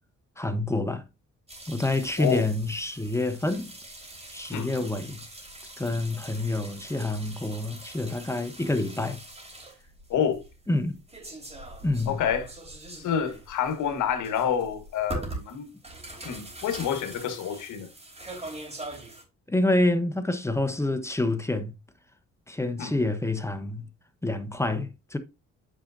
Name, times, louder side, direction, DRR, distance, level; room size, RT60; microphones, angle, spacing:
voice 1, 0.4-1.0 1.7-3.7 4.3-5.2 5.8-9.2 10.7-11.0 11.8-12.2 19.5-21.8 22.5-23.9 24.2-25.2, left 2 dB, 10° left, 0.9 m, -27 dB
sound 1, 1.5-19.2, right 1 dB, 20° right, 3.5 m, -42 dB
voice 2, 4.5-4.9 10.1-10.4 12.1-12.5 13.0-15.7 16.2-17.9 22.8-22.9, left 8 dB, 80° left, 1.3 m, -28 dB
8.9 x 4.9 x 2.6 m
cardioid pair, 90°, 30 cm